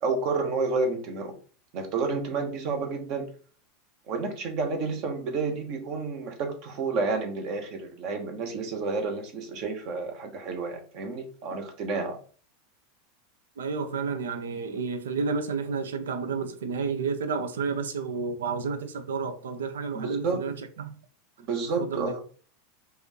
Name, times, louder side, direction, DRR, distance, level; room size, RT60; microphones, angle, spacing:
voice 1, 0.0-1.3 1.7-3.3 4.1-12.2 19.9-20.4 21.4-22.2, right 4 dB, 55° right, 1.1 m, -30 dB
voice 2, 13.6-20.9 21.8-22.1, right 5 dB, 80° right, 0.5 m, -31 dB
4.9 x 2.5 x 3.1 m
hypercardioid pair, 95°, 0 cm